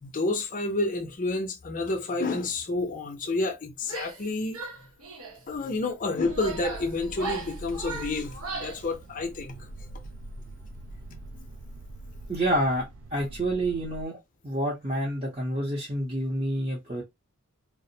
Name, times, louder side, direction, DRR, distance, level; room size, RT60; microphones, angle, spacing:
voice 1, 0.0-4.6 5.5-9.7 11.4-11.5, left 2 dB, 40° left, 0.5 m, -29 dB
Female speech woman speaking / Yell, 3.8-4.3 4.5-5.4 6.0-8.9, right 3 dB, 85° right, 0.8 m, -38 dB
sound 1, 6.2-14.1, right 1 dB, 65° right, 0.4 m, -43 dB
voice 2, 12.3-14.2 14.4-17.0, right 1 dB, 25° right, 0.6 m, -28 dB
2.4 x 2.0 x 2.6 m
head